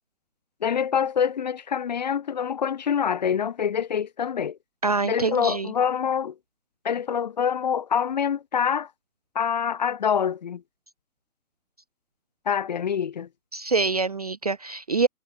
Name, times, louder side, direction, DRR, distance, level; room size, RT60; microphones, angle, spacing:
voice 1, 0.6-4.6 5.0-6.3 6.8-8.9 9.3-10.6 12.5-13.3, left 7 dB, 30° left, 0.6 m, -25 dB
voice 2, 4.8-5.7 13.5-15.1, right 4 dB, 30° right, 0.5 m, -25 dB
figure-of-eight pair, 135°, 42 cm